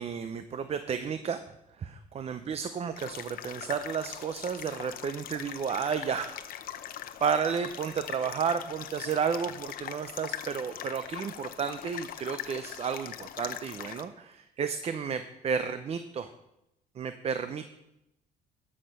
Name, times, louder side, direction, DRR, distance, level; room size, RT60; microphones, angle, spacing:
voice 1, 0.0-1.4 1.8-6.3 7.2-16.3 17.0-17.7, right 6 dB, 35° right, 10 dB, 0.6 m, -32 dB
sound 1, 3.0-14.0, left 10 dB, 60° left, 0.7 m, -41 dB
12.0 x 6.4 x 5.4 m, 0.87 s
cardioid pair, 110°, 17 cm